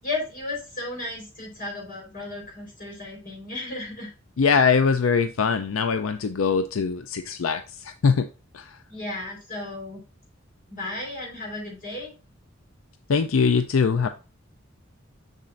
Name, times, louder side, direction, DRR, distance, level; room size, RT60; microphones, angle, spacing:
voice 1, 0.0-4.1 4.4-4.6 8.9-10.0 10.7-12.1, left 2 dB, 45° left, -1 dB, 4.0 m, -34 dB
voice 2, 4.4-8.3 8.5-8.7 13.1-14.1, left 5 dB, 85° left, 9 dB, 0.5 m, -22 dB
7.3 x 6.7 x 2.5 m, 0.33 s
head